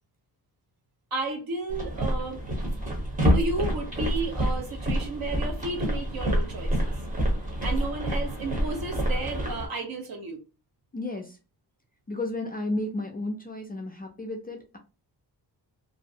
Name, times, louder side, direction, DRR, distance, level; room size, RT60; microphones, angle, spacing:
voice 1, 1.1-2.4 3.3-6.9 7.6-10.4, right 3 dB, 60° right, 2 dB, 0.9 m, -33 dB
sound 1, 1.7-9.7, equal, 20° right, 0.8 m, -27 dB
voice 2, 10.9-11.4 12.1-14.8, left 2 dB, 25° left, 2 dB, 0.3 m, -33 dB
2.5 x 2.0 x 2.6 m, 0.30 s
wide cardioid pair, 135°, 40 cm